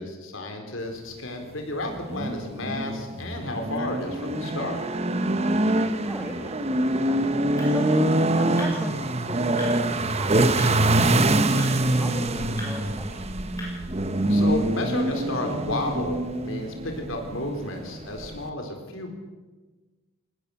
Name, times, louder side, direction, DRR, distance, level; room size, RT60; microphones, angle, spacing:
voice 1, 0.0-4.8 14.3-19.1, left 1 dB, 65° left, 3 dB, 4.2 m, -32 dB
sound 1, 1.9-18.5, right 1 dB, 30° right, 1.0 m, -25 dB
voice 2, 6.0-7.2 7.6-8.1 8.4-13.3, equal, 10° right, 2 dB, 1.6 m, -38 dB
sound 2, 7.0-14.3, left 1 dB, 15° left, 7.3 m, -44 dB
20.5 x 19.0 x 7.2 m, 1.3 s
head